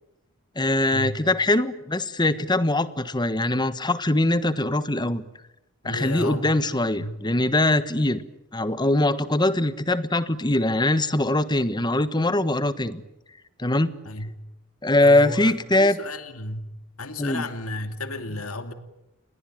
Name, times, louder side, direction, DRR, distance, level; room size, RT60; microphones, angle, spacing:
voice 1, 0.6-5.2 5.8-8.2 8.5-13.0 13.6-13.9 14.8-16.0 17.2-17.4, left 1 dB, 20° left, 1.3 m, -22 dB
voice 2, 5.8-6.5 7.0-7.2 14.0-14.3 15.0-16.7 17.0-18.7, left 2 dB, 80° left, 2.5 m, -33 dB
29.0 x 21.5 x 9.1 m
head